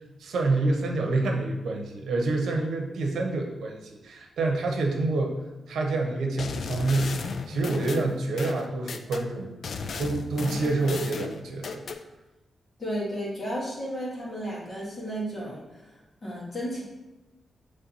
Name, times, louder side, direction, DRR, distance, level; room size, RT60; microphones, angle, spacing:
voice 1, 0.2-5.3 5.7-9.5 10.0-11.8, right 2 dB, 80° right, 2 dB, 0.8 m, -27 dB
sound 1, 6.4-9.2 9.6-12.0, left 4 dB, 50° left, 0.4 m, -35 dB
voice 2, 12.8-16.8, equal, 30° left, -6 dB, 1.9 m, -33 dB
7.5 x 3.2 x 4.1 m, 1.0 s
wide cardioid pair, 180°, 0 cm